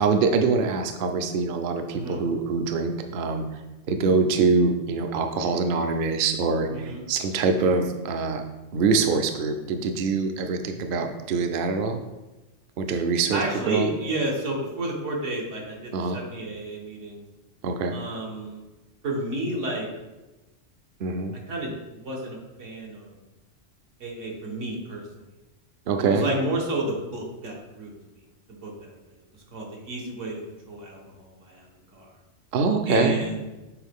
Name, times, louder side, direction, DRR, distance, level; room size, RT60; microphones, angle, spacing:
voice 1, 0.0-3.4 3.9-8.4 8.7-12.0 12.8-13.9 15.9-16.2 17.6-18.0 21.0-21.3 25.9-26.2 32.5-33.2, right 4 dB, 60° right, 6 dB, 0.6 m, -24 dB
voice 2, 1.9-2.2 6.7-7.0 13.3-17.2 17.9-18.6 19.0-19.9 21.5-23.2 24.0-25.1 26.0-27.9 28.5-29.0 29.5-30.4 30.7-31.7 31.9-32.1 32.9-33.4, right 2 dB, 80° right, -1 dB, 1.6 m, -31 dB
7.1 x 3.8 x 3.5 m, 1.1 s
omnidirectional pair, 1.3 m